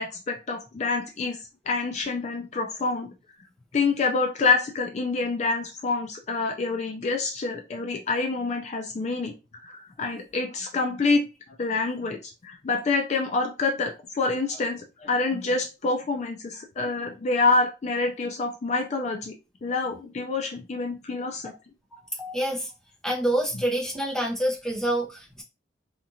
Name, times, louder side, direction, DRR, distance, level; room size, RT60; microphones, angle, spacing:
voice 1, 0.0-3.1 3.7-9.3 9.6-11.2 11.6-19.3 19.6-21.5, left 3 dB, 40° left, 3 dB, 0.4 m, -27 dB
voice 2, 21.9-22.7 23.0-25.4, right 1 dB, 5° left, -2 dB, 0.7 m, -27 dB
2.9 x 2.4 x 2.6 m, 0.28 s
head